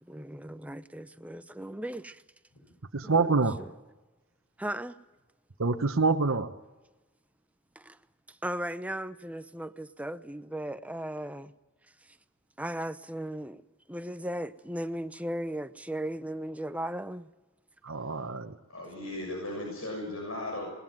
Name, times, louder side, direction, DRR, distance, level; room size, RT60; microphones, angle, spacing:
voice 1, 0.0-2.2 3.0-3.7 4.6-5.0 7.8-8.0 8.3-11.5 12.0-12.2 12.6-17.3, right 1 dB, 5° right, 0.7 m, -37 dB
voice 2, 2.9-3.6 5.6-6.5 17.8-18.5, right 4 dB, 80° right, 1.0 m, -26 dB
voice 3, 18.7-20.7, left 1 dB, 90° left, 6.8 m, -36 dB
20.0 x 20.0 x 9.1 m
head